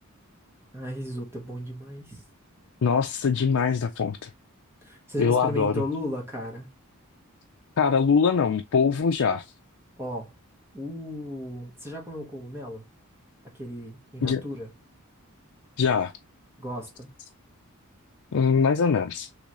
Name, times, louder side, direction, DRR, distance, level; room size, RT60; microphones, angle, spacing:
voice 1, 0.7-2.2 4.8-6.7 10.0-10.3 10.7-12.8 13.5-14.7 16.6-17.1, left 1 dB, 10° right, 1.1 m, -35 dB
voice 2, 2.8-4.3 5.2-5.8 7.8-9.4 14.2-14.4 15.8-16.1 18.3-19.3, left 6 dB, 70° left, 0.4 m, -23 dB
3.8 x 3.1 x 3.0 m
head